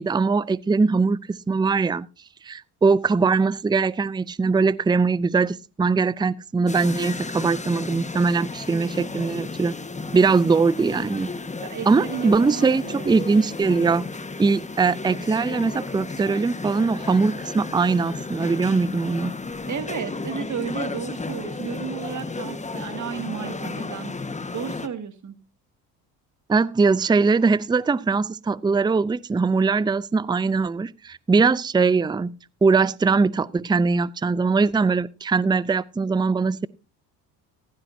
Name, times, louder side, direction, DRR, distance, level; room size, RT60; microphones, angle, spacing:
voice 1, 0.0-2.1 2.4-9.7 10.1-11.3 11.9-14.1 14.4-19.3 26.5-32.4 32.6-36.7, right 4 dB, 10° right, 0.5 m, -21 dB
sound 1, 6.7-24.9, left 3 dB, 15° left, 1.4 m, -33 dB
voice 2, 11.6-13.1 19.7-25.3, right 7 dB, 45° right, 2.3 m, -33 dB
15.5 x 14.5 x 2.7 m
supercardioid pair, 70°, 41 cm